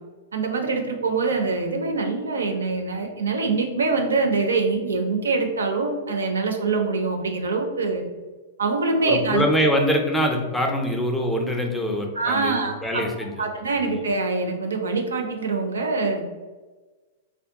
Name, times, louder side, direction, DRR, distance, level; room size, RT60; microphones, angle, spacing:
voice 1, 0.3-8.0 8.6-9.8 12.1-13.0 13.4-16.2, right 3 dB, 70° right, 4 dB, 0.5 m, -24 dB
voice 2, 9.1-13.5 13.8-14.0, equal, 5° left, 2 dB, 0.5 m, -24 dB
3.5 x 2.2 x 2.6 m, 1.3 s
figure-of-eight pair, 100°, 0 cm